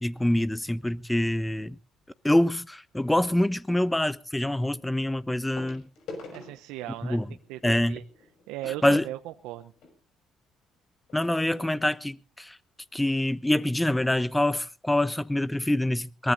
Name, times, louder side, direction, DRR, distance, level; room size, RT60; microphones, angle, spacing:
voice 1, 0.0-1.7 2.2-5.9 7.0-7.2 7.6-8.0 8.8-9.0 11.1-12.6 12.9-16.3, left 1 dB, 10° left, 1.1 m, -25 dB
sound 1, 2.0-2.3 3.9-4.0 5.6-10.0 10.7-10.8 11.0-11.2 11.8-11.9, left 3 dB, 65° left, 6.2 m, -46 dB
voice 2, 6.3-7.2 7.5-8.0 8.5-9.7, right 14 dB, 75° right, 0.8 m, -37 dB
23.0 x 20.0 x 2.7 m
hypercardioid pair, 55°, 0 cm